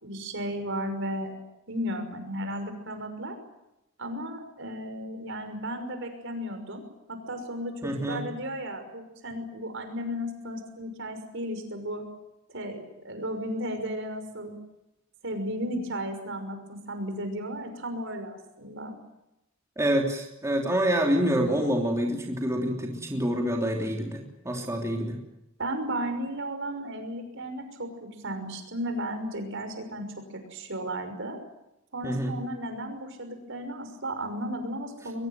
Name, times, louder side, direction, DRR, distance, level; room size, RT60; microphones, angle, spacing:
voice 1, 0.0-1.3 1.7-3.4 4.0-6.8 7.1-12.0 12.5-14.5 15.2-18.9 25.6-30.1 30.3-31.4 31.9-35.3, equal, 60° right, 7 dB, 6.0 m, -34 dB
voice 2, 7.8-8.2 19.8-25.2 32.0-32.3, equal, 15° right, 0 dB, 3.3 m, -27 dB
23.0 x 22.0 x 9.1 m, 0.90 s
head